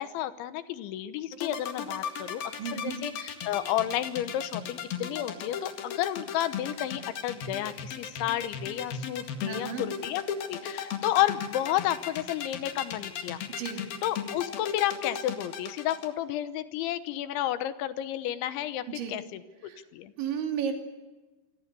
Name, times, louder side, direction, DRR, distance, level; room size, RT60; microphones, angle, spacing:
voice 1, 0.0-10.2 10.5-13.4 14.0-19.4 19.9-20.1, left 12 dB, 80° left, 12 dB, 3.3 m, -31 dB
sound 1, 1.3-16.1, left 8 dB, 60° left, 3.4 m, -35 dB
voice 2, 2.6-3.0 9.4-9.8 13.6-13.8 18.9-19.1 19.6-19.8 20.2-20.7, right 7 dB, 70° right, 4 dB, 5.1 m, -33 dB
25.5 x 25.5 x 6.9 m, 1.2 s
omnidirectional pair, 5.5 m